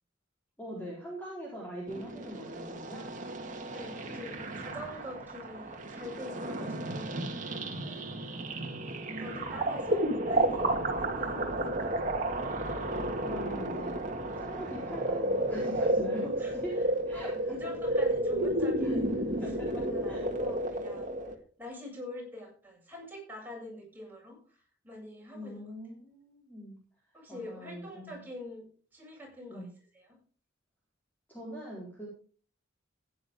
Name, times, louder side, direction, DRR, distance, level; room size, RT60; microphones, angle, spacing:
voice 1, 0.6-3.1 9.1-9.9 13.2-14.0 14.4-16.8 17.1-17.6 18.8-19.7 20.1-20.3 25.3-26.8 27.3-28.2 29.5-29.7 31.3-32.1, equal, 10° left, -5 dB, 4.2 m, -42 dB
sound 1, 1.9-21.4, right 1 dB, 40° right, 1.9 m, -32 dB
voice 2, 3.7-8.2 9.2-12.0 16.4-16.5 17.1-21.2 21.6-25.6 27.1-30.2, left 1 dB, 10° right, -3 dB, 7.7 m, -45 dB
15.5 x 10.5 x 3.7 m, 0.40 s
head